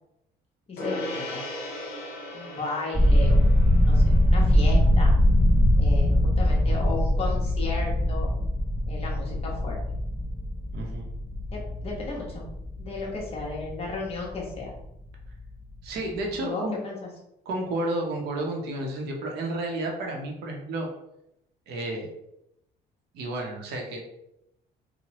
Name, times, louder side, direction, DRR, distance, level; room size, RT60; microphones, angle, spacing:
voice 1, 0.7-1.4 2.3-3.4 3.9-5.1 5.8-8.3 8.9-9.8 11.5-12.5 12.8-14.7 16.4-17.0, left 3 dB, 35° left, -2 dB, 0.9 m, -34 dB
Gong, 0.8-10.5, left 1 dB, 60° left, 0.8 m, -41 dB
sound 1, 2.9-14.8 15.1-15.4 15.8-16.0, left 1 dB, 10° right, 0.3 m, -22 dB
voice 2, 10.7-11.0 15.8-16.8 17.5-20.9 21.7-22.1 23.1-24.2, right 2 dB, 75° right, 0 dB, 0.7 m, -31 dB
3.0 x 2.1 x 2.8 m, 0.82 s
cardioid pair, 110°, 17 cm